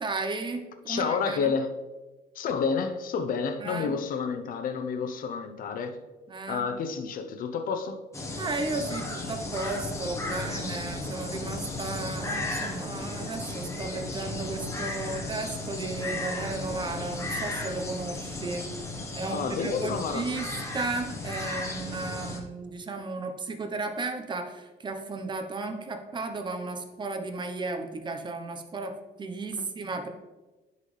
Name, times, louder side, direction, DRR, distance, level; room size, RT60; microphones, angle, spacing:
voice 1, 0.0-1.5 3.6-4.0 6.3-6.7 8.4-18.7 19.2-30.1, right 3 dB, 25° right, 5 dB, 0.9 m, -34 dB
voice 2, 0.9-1.7 2.3-6.0 6.5-8.0 19.3-20.4 29.6-29.7, left 5 dB, 55° left, 8 dB, 0.7 m, -30 dB
sound 1, 8.1-22.4, left 2 dB, 15° left, 1.2 m, -35 dB
10.5 x 4.1 x 3.3 m, 1.1 s
cardioid pair, 110°, 17 cm